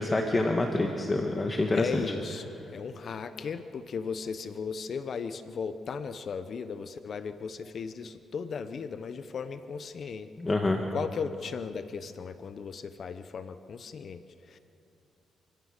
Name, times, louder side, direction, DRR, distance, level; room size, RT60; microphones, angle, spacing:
voice 1, 0.0-1.9 10.4-10.8, left 2 dB, 25° left, 3 dB, 1.6 m, -27 dB
voice 2, 1.7-10.3 10.9-14.6, left 6 dB, 50° left, 11 dB, 0.9 m, -36 dB
27.5 x 17.0 x 6.7 m, 2.8 s
cardioid pair, 90°, 0 cm